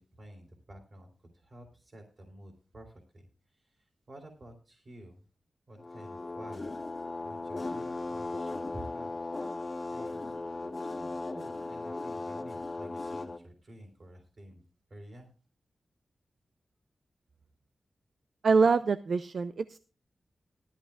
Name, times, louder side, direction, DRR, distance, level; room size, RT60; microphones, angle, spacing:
voice 1, 0.0-5.2 5.7-6.9 7.2-9.2 9.5-14.6 14.9-15.3, right 1 dB, 50° right, 3 dB, 3.3 m, -51 dB
sound 1, 5.8-13.4, left 2 dB, 35° left, 2.0 m, -37 dB
voice 2, 18.4-19.8, right 4 dB, 75° right, 11 dB, 0.6 m, -25 dB
18.0 x 13.5 x 2.4 m, 0.35 s
wide cardioid pair, 85°, 0 cm